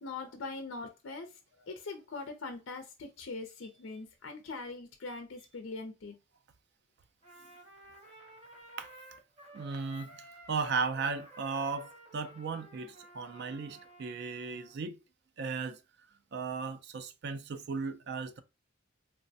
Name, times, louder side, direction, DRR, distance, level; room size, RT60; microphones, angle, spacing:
voice 1, 0.0-6.2, left 3 dB, 60° left, 0.4 m, -42 dB
Trumpet, 7.2-14.8, right 1 dB, 30° right, 0.9 m, -53 dB
voice 2, 9.5-10.2 10.5-15.0 15.4-15.8 16.3-18.4, right 4 dB, 55° right, 0.4 m, -36 dB
3.2 x 2.0 x 2.6 m
head